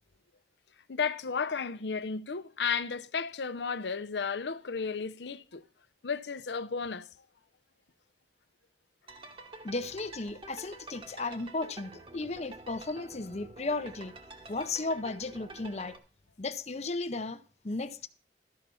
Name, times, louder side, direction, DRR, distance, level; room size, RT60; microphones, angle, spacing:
voice 1, 0.9-5.6 6.0-7.1, left 5 dB, 80° left, 0.7 m, -33 dB
sound 1, 9.1-16.0, right 2 dB, 30° right, 1.2 m, -48 dB
voice 2, 9.6-14.2 14.5-16.0 16.4-18.1, left 3 dB, 40° left, 0.6 m, -35 dB
13.5 x 5.7 x 6.8 m
head